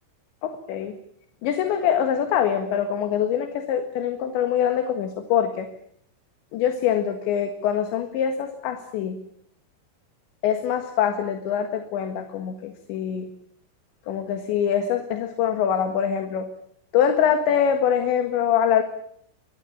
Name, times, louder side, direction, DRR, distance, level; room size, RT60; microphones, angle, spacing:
voice 1, 0.4-1.0 1.4-5.7 6.5-9.2 10.4-13.3 14.1-16.5 16.9-18.8, left 8 dB, 70° left, 7 dB, 3.7 m, -24 dB
24.0 x 20.0 x 8.7 m, 0.68 s
omnidirectional pair, 5.7 m